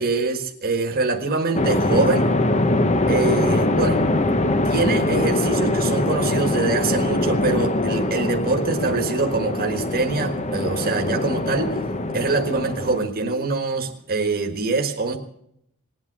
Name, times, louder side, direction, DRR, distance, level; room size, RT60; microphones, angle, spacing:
voice 1, 0.0-2.3 3.1-4.0 4.6-11.8 12.1-15.2, right 3 dB, 45° right, 4 dB, 1.5 m, -24 dB
sound 1, 1.5-13.0, left 2 dB, 30° left, 1.0 m, -22 dB
20.0 x 8.8 x 8.0 m, 0.74 s
head